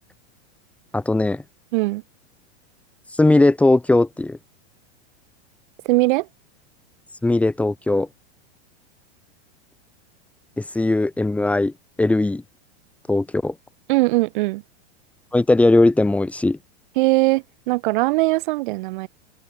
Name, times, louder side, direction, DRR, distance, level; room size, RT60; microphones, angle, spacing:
voice 1, 0.9-1.4 3.2-4.4 7.2-8.1 10.6-11.7 12.0-12.4 13.1-13.5 15.3-16.6, left 2 dB, 5° left, 3.8 m, -18 dB
voice 2, 1.7-2.0 5.8-6.3 13.9-14.6 17.0-19.1, right 22 dB, 45° right, 6.2 m, -20 dB
open air
supercardioid pair, 175°, 34 cm